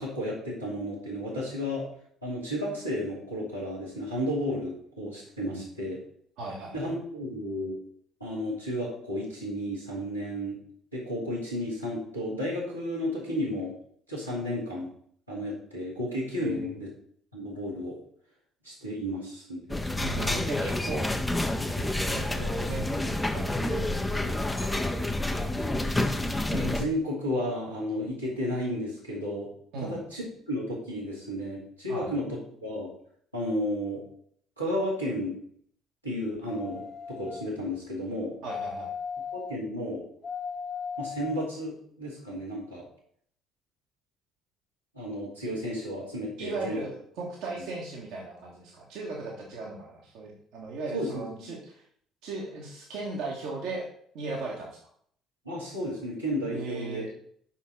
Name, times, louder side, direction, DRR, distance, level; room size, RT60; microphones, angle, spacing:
voice 1, 0.0-1.9 2.2-6.0 6.7-7.7 8.2-10.6 10.9-13.7 14.1-14.9 15.3-16.9 17.3-18.0 18.6-19.8 26.5-29.5 29.8-32.3 32.6-32.9 33.3-34.0 34.6-35.3 36.0-36.8 37.1-38.4 39.3-40.0 41.0-42.9 44.9-46.8 50.9-51.5 55.4-57.1, equal, 90° right, -8 dB, 2.6 m, -32 dB
voice 2, 6.4-6.8 16.4-16.7 20.0-21.2 21.7-25.0 25.4-25.7 29.7-30.0 31.9-32.1 38.4-38.9 46.4-51.8 52.2-53.8 54.1-54.8 56.5-57.1, right 3 dB, 60° right, -3 dB, 1.6 m, -37 dB
sound 1, 19.7-26.8, left 1 dB, 10° left, 0.8 m, -29 dB
sound 2, 36.5-37.5 38.5-39.6 40.2-41.5 42.1-42.2, left 6 dB, 35° left, 1.4 m, -37 dB
5.7 x 5.6 x 6.3 m, 0.64 s
figure-of-eight pair, 50°, 0 cm